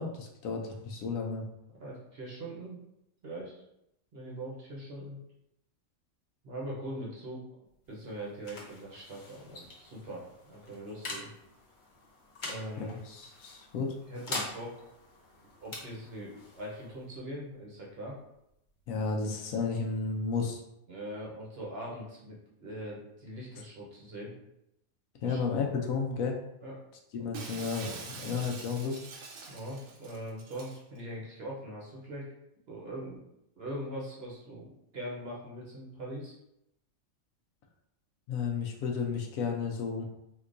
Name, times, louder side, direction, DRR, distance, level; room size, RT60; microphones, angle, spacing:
voice 1, 0.0-1.4 12.8-13.9 18.9-20.6 25.2-26.4 27.1-27.9 28.2-29.1 38.3-40.0, left 5 dB, 80° left, 2 dB, 1.0 m, -32 dB
voice 2, 1.7-2.8 3.2-3.5 4.1-5.2 6.4-7.4 7.9-11.3 12.4-13.0 14.1-14.8 15.6-18.2 20.9-24.3 25.2-25.4 26.6-26.8 28.2-28.3 29.5-32.3 32.7-33.2 33.6-34.7 34.9-36.3, right 1 dB, 50° right, -4 dB, 0.9 m, -41 dB
sound 1, 7.7-19.0, left 2 dB, 55° left, 1.1 m, -45 dB
Shatter, 27.3-30.8, right 4 dB, 75° right, 1.0 m, -45 dB
3.6 x 2.9 x 2.5 m, 0.83 s
omnidirectional pair, 1.5 m